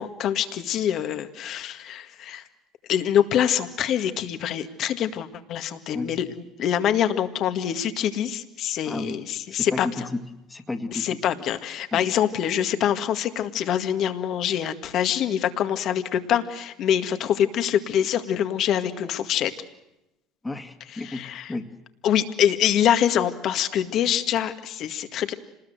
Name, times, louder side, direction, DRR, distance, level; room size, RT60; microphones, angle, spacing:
voice 1, 0.0-2.4 2.9-9.9 10.9-19.5 21.0-21.5 22.0-25.3, left 10 dB, 60° left, 9 dB, 1.9 m, -25 dB
voice 2, 8.9-9.2 9.5-10.2 10.5-11.2 11.9-12.1 20.4-21.7, left 2 dB, 15° left, 6 dB, 2.1 m, -32 dB
26.5 x 20.0 x 8.0 m, 0.92 s
supercardioid pair, 85°, 0 cm